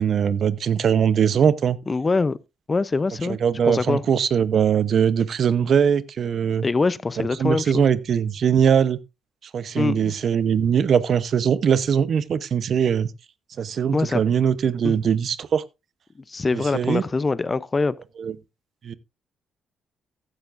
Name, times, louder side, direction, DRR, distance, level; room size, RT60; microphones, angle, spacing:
voice 1, 0.0-1.8 3.3-6.7 7.2-9.0 9.5-13.1 13.6-15.6 16.5-17.0 18.2-18.3 18.8-18.9, right 7 dB, 55° right, 0.8 m, -21 dB
voice 2, 1.9-2.4 2.7-3.4 3.7-4.0 6.6-7.8 9.8-10.1 13.9-14.2 14.8-15.0 16.3-18.0, left 3 dB, 25° left, 0.6 m, -23 dB
14.0 x 11.0 x 2.5 m
cardioid pair, 90°, 0 cm